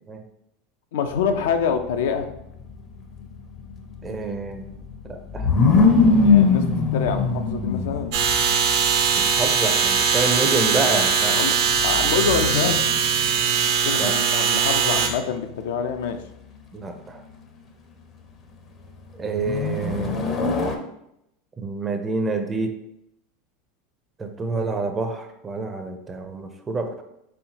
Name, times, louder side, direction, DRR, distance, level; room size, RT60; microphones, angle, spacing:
voice 1, 0.9-2.3 6.2-8.1 11.3-11.6 11.8-12.9 13.4-16.2, left 6 dB, 80° left, 7 dB, 0.5 m, -26 dB
sound 1, 1.1-13.5 14.7-15.5 19.4-20.8, left 4 dB, 30° left, 0.6 m, -23 dB
voice 2, 4.0-4.7 5.1-5.5 9.0-11.4 14.0-14.1 16.7-17.2 19.2-20.2 21.6-22.7 24.2-27.0, right 3 dB, 20° right, 6 dB, 0.5 m, -28 dB
sound 2, 8.1-15.1, right 6 dB, 65° right, 0.8 m, -21 dB
4.4 x 3.4 x 2.8 m, 0.80 s
supercardioid pair, 130°, 0 cm